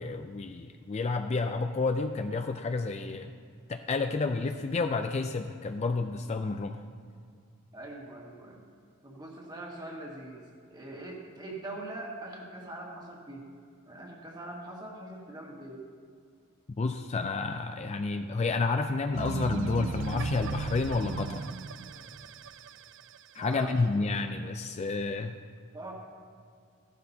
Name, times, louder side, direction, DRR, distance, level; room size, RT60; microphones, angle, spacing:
voice 1, 0.0-3.3 3.7-6.8 16.8-21.5 23.3-25.3, left 3 dB, 30° left, 6 dB, 0.4 m, -30 dB
voice 2, 7.7-8.6 9.0-10.4 10.7-13.5 13.9-15.8 23.4-24.0 25.7-25.9, right 2 dB, 20° right, -2 dB, 1.7 m, -42 dB
sound 1, 19.1-23.5, right 5 dB, 60° right, 0.4 m, -36 dB
14.5 x 11.5 x 2.8 m, 2.2 s
head